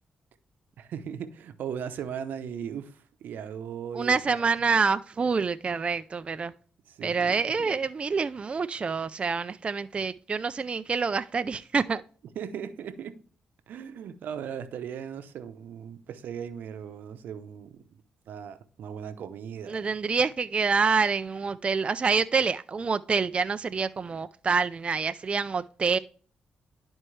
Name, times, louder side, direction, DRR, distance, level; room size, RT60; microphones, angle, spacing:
voice 1, 0.8-4.4 6.9-7.7 12.4-13.2 13.7-17.8 18.3-19.9, right 8 dB, 80° right, 0.7 m, -38 dB
voice 2, 3.9-6.5 7.0-12.0 19.7-26.0, right 5 dB, 40° right, 0.4 m, -27 dB
11.5 x 4.4 x 3.2 m
cardioid pair, 70°, 3 cm